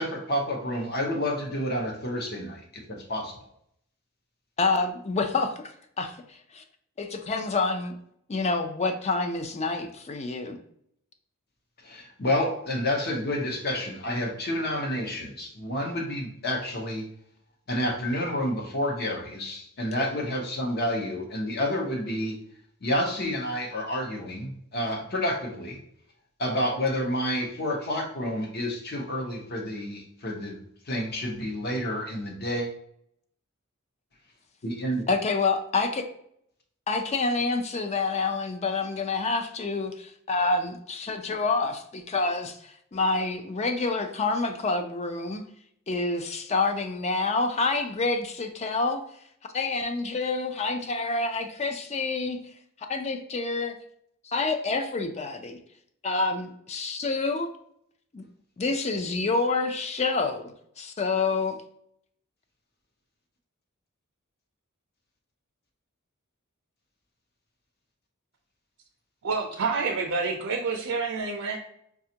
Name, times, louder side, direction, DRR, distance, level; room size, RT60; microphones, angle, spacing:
voice 1, 0.0-3.4 11.8-17.1 17.7-22.4 22.8-25.8 26.4-30.6 30.9-32.7 34.6-35.0, left 1 dB, 50° left, 2 dB, 0.8 m, -29 dB
voice 2, 4.6-5.7 6.0-6.1 6.5-6.6 7.0-8.0 8.3-10.6 35.1-36.0 36.9-45.4 45.9-49.0 49.5-52.4 52.9-53.8 54.2-55.6 56.0-57.5 58.1-58.2 58.6-60.5 60.8-61.6, left 3 dB, 30° left, 6 dB, 0.4 m, -27 dB
voice 3, 69.2-71.6, right 4 dB, 60° right, 0 dB, 0.5 m, -28 dB
5.0 x 2.3 x 2.8 m, 0.70 s
head